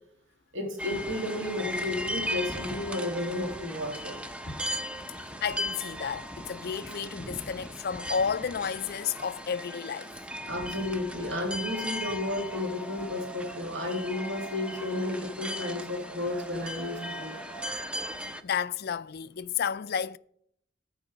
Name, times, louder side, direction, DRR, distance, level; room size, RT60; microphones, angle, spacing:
voice 1, 0.5-4.2 4.4-4.5 10.5-17.4, left 1 dB, 70° right, 2.8 m, -32 dB
sound 1, 0.8-18.4, equal, 5° right, 0.6 m, -37 dB
voice 2, 5.2-10.1 18.4-20.2, left 7 dB, 50° left, 0.4 m, -32 dB
sound 2, 8.9-10.8 12.0-18.0, right 6 dB, 25° right, 1.3 m, -47 dB
14.0 x 4.8 x 5.1 m
head